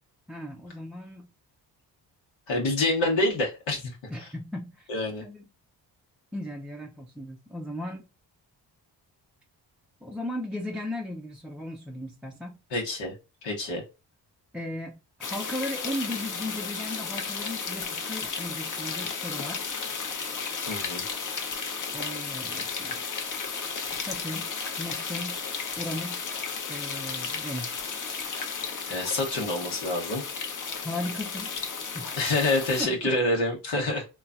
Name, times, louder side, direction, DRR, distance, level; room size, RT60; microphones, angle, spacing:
voice 1, 0.3-1.3 2.6-2.7 4.1-4.9 5.2-5.4 6.3-8.1 10.0-12.6 14.5-19.7 21.9-23.0 23.9-24.5 24.8-25.4 25.8-26.3 26.7-27.8 30.8-31.5 31.9-32.1 32.8-33.1, left 1 dB, ahead, 0.4 m, -36 dB
voice 2, 2.5-4.3 4.9-5.2 12.7-13.1 13.4-13.8 20.7-21.0 28.8-30.2 32.2-34.1, left 2 dB, 80° left, 1.0 m, -27 dB
sound 1, 15.2-32.8, left 5 dB, 45° left, 0.7 m, -34 dB
3.0 x 2.3 x 2.4 m
cardioid pair, 60°, 44 cm